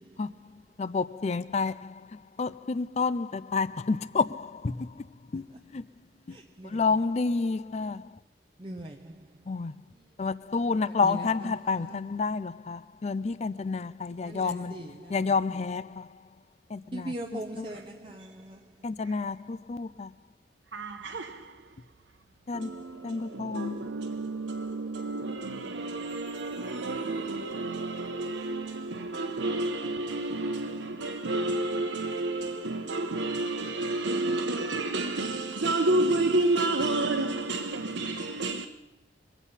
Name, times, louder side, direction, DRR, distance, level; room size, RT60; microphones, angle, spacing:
voice 1, 0.8-1.7 2.4-4.7 5.3-5.4 6.7-8.0 9.5-9.7 10.2-14.8 15.1-15.8 16.7-17.7 18.8-20.1 22.5-22.7 23.0-23.7, left 4 dB, 35° left, 0.4 m, -29 dB
voice 2, 6.3-6.8 8.6-9.1 11.0-12.0 14.3-15.3 16.9-18.6, right 1 dB, 25° right, 0.7 m, -40 dB
voice 3, 20.7-21.7 22.5-38.7, right 2 dB, 80° right, 0.9 m, -30 dB
23.0 x 8.2 x 5.5 m
head